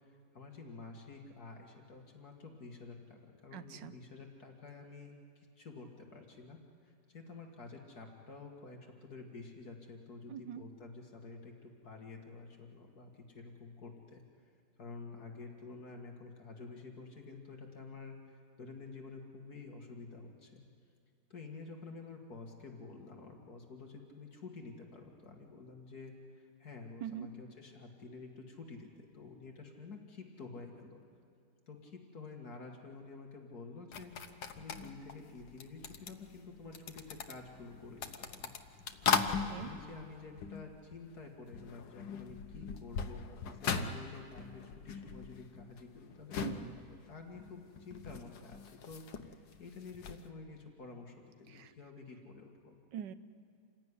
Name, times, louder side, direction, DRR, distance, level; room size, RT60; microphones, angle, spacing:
voice 1, 0.0-14.5 14.8-20.6 21.3-28.9 29.1-31.0 31.7-38.6 39.2-52.8, left 3 dB, 55° left, 2 dB, 2.5 m, -50 dB
voice 2, 3.5-3.9 10.3-10.6 27.0-27.3 39.5-39.7 46.4-46.7 51.5-51.7 52.9-53.1, right 9 dB, 75° right, 12 dB, 1.5 m, -43 dB
sound 1, 33.9-41.2 41.5-50.3, left 6 dB, 80° left, 1.7 m, -39 dB
28.0 x 16.0 x 9.9 m, 2.3 s
omnidirectional pair, 2.0 m